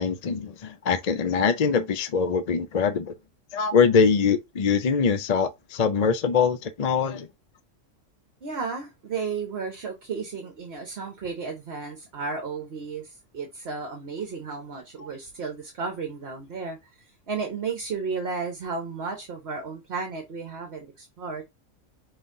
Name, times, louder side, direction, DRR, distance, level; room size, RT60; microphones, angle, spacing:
voice 1, 0.0-3.1 3.5-7.3, left 5 dB, 50° left, 0.5 m, -23 dB
voice 2, 8.4-21.4, right 5 dB, 55° right, 1.2 m, -33 dB
5.4 x 3.3 x 2.6 m
omnidirectional pair, 1.3 m